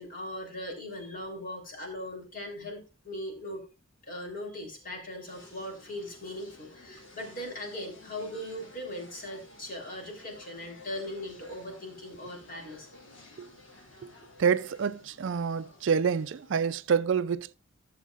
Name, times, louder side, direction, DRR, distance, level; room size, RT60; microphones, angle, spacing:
voice 1, 0.0-3.6 4.0-12.9, left 1 dB, 40° left, 3.5 m, -39 dB
sound 1, 5.3-16.8, left 2 dB, 65° left, 3.0 m, -53 dB
voice 2, 14.4-17.5, right 6 dB, 60° right, 0.4 m, -27 dB
15.0 x 7.3 x 2.4 m
head